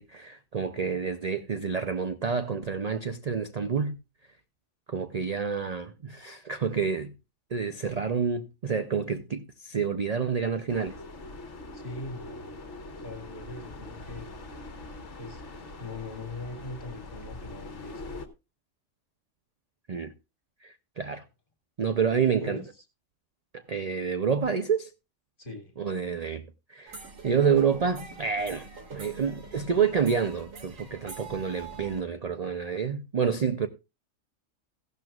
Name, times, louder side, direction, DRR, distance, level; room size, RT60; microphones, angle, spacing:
voice 1, 0.0-4.0 4.9-7.1 7.5-11.0 19.9-20.1 20.6-21.2 21.8-22.6 23.5-24.9 25.8-26.4 26.7-33.7, right 6 dB, 45° right, 0.5 m, -28 dB
sound 1, 10.7-18.3, left 2 dB, 60° left, 1.6 m, -43 dB
voice 2, 11.7-12.5 13.0-14.3 15.2-15.4 15.8-18.1 22.0-22.6 25.4-25.7, left 2 dB, 40° left, 2.3 m, -40 dB
sound 2, 26.9-32.0, right 4 dB, 80° right, 2.3 m, -44 dB
15.0 x 12.0 x 2.4 m
omnidirectional pair, 1.4 m